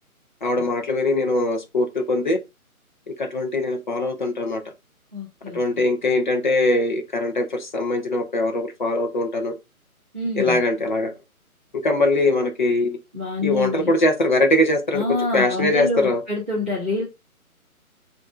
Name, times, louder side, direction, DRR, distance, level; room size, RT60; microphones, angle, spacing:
voice 1, 0.4-2.4 3.1-4.6 5.5-9.5 10.4-11.1 11.8-13.0 13.4-15.0 15.3-16.2, left 2 dB, 35° left, 0.7 m, -21 dB
voice 2, 5.1-5.6 10.1-10.6 13.1-13.9 14.9-17.0, left 3 dB, 10° right, 0.7 m, -26 dB
7.0 x 2.6 x 2.4 m
hypercardioid pair, 165°, 43 cm